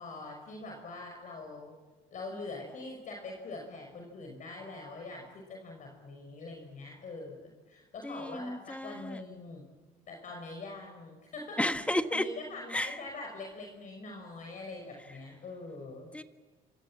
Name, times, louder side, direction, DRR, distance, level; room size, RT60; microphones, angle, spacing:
voice 1, 0.0-1.8 2.1-9.6 10.1-11.6 12.1-16.1, left 2 dB, 50° left, 2 dB, 5.5 m, -43 dB
voice 2, 8.0-9.2 11.6-12.3 12.7-13.0 16.1-16.2, left 1 dB, 5° left, 8 dB, 1.6 m, -32 dB
27.5 x 26.0 x 7.6 m, 1.3 s
cardioid pair, 110°, 17 cm